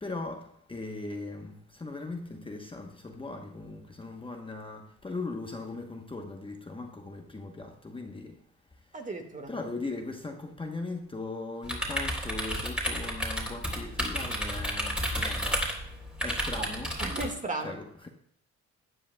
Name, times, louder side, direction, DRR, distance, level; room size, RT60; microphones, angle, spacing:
voice 1, 0.0-8.4 9.5-15.7 16.2-16.9 17.6-18.1, left 3 dB, 15° left, 0.9 m, -39 dB
voice 2, 8.9-9.5 16.6-16.7 17.0-17.7, right 2 dB, 25° right, 1.7 m, -35 dB
sound 1, 11.6-17.3, equal, 5° right, 3.2 m, -32 dB
15.0 x 10.0 x 2.2 m
cardioid pair, 95°, 30 cm